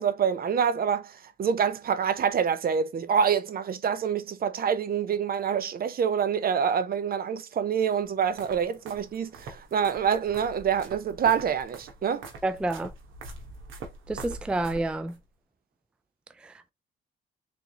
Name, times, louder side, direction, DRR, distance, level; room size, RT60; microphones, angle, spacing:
voice 1, 0.0-12.3, right 7 dB, 50° right, 0.7 m, -26 dB
sound 1, 7.9-15.2, right 3 dB, 85° right, 1.3 m, -44 dB
voice 2, 12.4-12.9 14.1-15.2 16.4-16.7, right 2 dB, 5° right, 0.3 m, -29 dB
3.7 x 3.5 x 2.9 m
cardioid pair, 90°, 20 cm